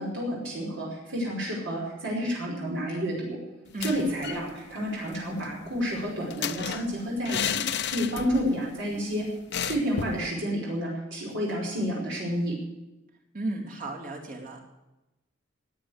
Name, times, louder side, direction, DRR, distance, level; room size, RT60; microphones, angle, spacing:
voice 1, 0.0-3.4 3.8-9.3 9.6-12.5, equal, 65° right, -4 dB, 5.1 m, -30 dB
sound 1, 3.7-4.5 4.8-4.9 5.1-8.6 8.9-9.0 9.5-10.3, left 7 dB, 60° left, 0.8 m, -33 dB
voice 2, 13.3-14.6, right 2 dB, 45° right, -1 dB, 3.2 m, -34 dB
17.0 x 9.0 x 8.3 m, 1.0 s
head